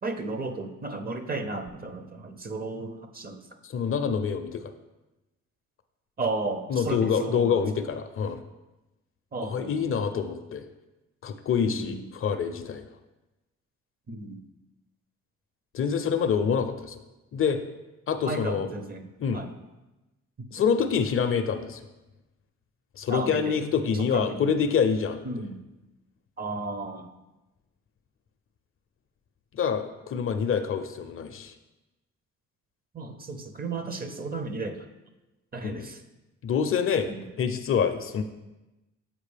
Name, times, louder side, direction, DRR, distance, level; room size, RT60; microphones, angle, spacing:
voice 1, 0.0-3.4 6.2-7.6 9.3-9.8 11.6-12.1 14.1-14.4 18.2-19.1 19.3-19.6 20.4-20.5 23.1-23.6 23.9-24.5 25.2-25.6 26.4-27.1 32.9-34.8 35.5-36.0 37.1-37.3, right 3 dB, 30° right, 7 dB, 0.6 m, -34 dB
voice 2, 3.6-4.7 6.7-8.4 9.4-10.7 11.2-12.9 15.7-17.0 17.3-17.6 18.1-18.7 19.2-19.4 20.5-21.8 23.0-25.2 29.5-31.5 35.6-35.9 36.4-37.1 37.4-38.2, left 6 dB, 45° left, 9 dB, 0.5 m, -26 dB
7.4 x 4.8 x 3.3 m, 1.0 s
cardioid pair, 90°, 30 cm